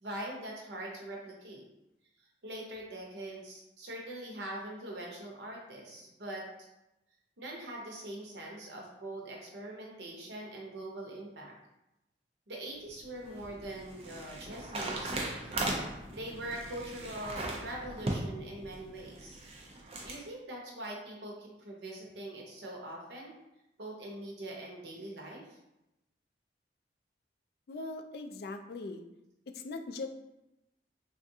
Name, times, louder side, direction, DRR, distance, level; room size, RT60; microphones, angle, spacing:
voice 1, 0.0-1.6 2.2-6.4 7.4-11.5 12.5-15.3 16.1-19.4 20.0-23.3 23.8-25.6, right 1 dB, 75° right, -1 dB, 0.8 m, -43 dB
sound 1, 12.9-20.2, right 2 dB, 35° right, 0.4 m, -38 dB
voice 2, 27.7-29.1 29.5-30.1, left 3 dB, 55° left, 6 dB, 0.3 m, -40 dB
3.5 x 2.4 x 2.7 m, 0.91 s
head